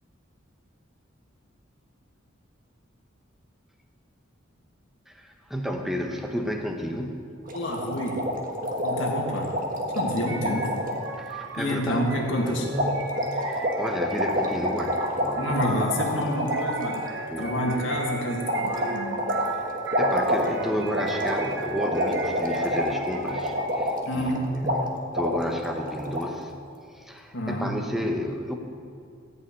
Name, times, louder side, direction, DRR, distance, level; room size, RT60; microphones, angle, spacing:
voice 1, 5.1-7.3 11.2-12.1 12.4-15.7 17.3-17.9 19.5-19.7 20.0-26.5 26.9-28.6, equal, ahead, 3 dB, 0.9 m, -32 dB
voice 2, 7.5-8.3 8.7-9.6 9.9-10.8 11.6-12.7 15.3-17.1 17.4-19.2 24.1-24.5 27.3-27.8, left 1 dB, 70° left, -1 dB, 2.1 m, -28 dB
sound 1, 7.5-11.1 12.7-17.1 18.5-24.4 24.6-24.8 25.1-26.2, equal, 45° right, 1.4 m, -28 dB
sound 2, 10.3-23.9, right 3 dB, 60° right, 0.9 m, -36 dB
14.5 x 5.6 x 8.7 m, 2.3 s
head